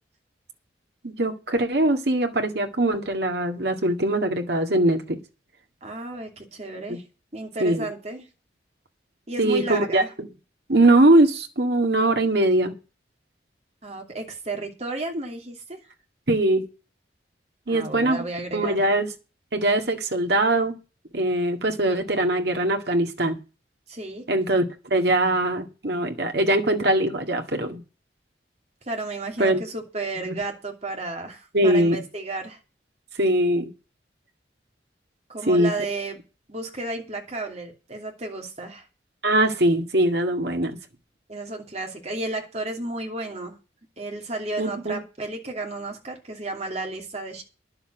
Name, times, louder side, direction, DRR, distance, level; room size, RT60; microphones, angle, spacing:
voice 1, 1.0-5.2 6.9-7.0 7.6-7.9 9.4-10.3 10.7-12.7 16.3-16.6 17.7-18.2 18.5-19.1 19.5-20.7 21.1-23.4 24.3-27.8 29.4-29.6 30.3-30.4 31.5-32.0 33.2-33.7 35.5-35.7 39.2-40.8 44.6-45.0, right 1 dB, 60° right, 2.0 m, -21 dB
voice 2, 5.8-7.0 7.3-8.3 9.3-10.1 13.8-15.8 17.7-18.8 23.9-24.2 28.9-32.6 35.3-36.2 36.5-38.8 41.3-43.6 44.0-47.4, right 2 dB, 35° right, 2.7 m, -33 dB
10.5 x 7.0 x 7.9 m
head